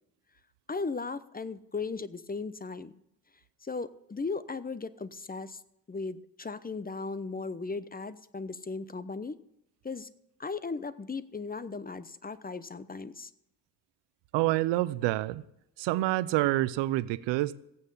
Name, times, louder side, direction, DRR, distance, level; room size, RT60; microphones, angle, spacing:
voice 1, 0.7-2.9 3.6-5.6 5.9-9.4 9.8-10.1 10.4-13.3, left 4 dB, 20° left, 15 dB, 0.8 m, -37 dB
voice 2, 14.3-15.4 15.8-17.5, right 17 dB, 80° right, 18 dB, 0.6 m, -27 dB
15.0 x 9.0 x 5.6 m, 0.82 s
supercardioid pair, 55°, 42 cm